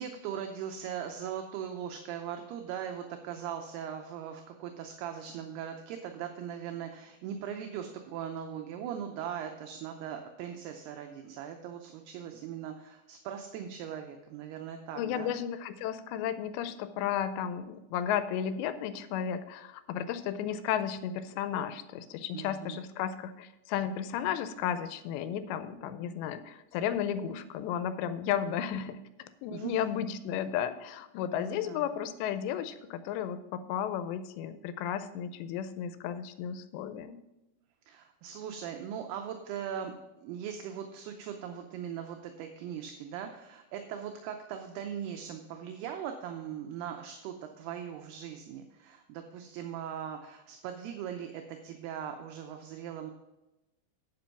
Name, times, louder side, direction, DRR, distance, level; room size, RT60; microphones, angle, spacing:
voice 1, 0.0-15.3 22.3-22.8 29.5-29.8 31.3-31.9 37.9-53.1, right 8 dB, 80° right, 5 dB, 2.5 m, -40 dB
voice 2, 15.0-37.2, left 9 dB, 85° left, 11 dB, 2.8 m, -34 dB
10.5 x 5.4 x 5.8 m, 0.96 s
omnidirectional pair, 5.0 m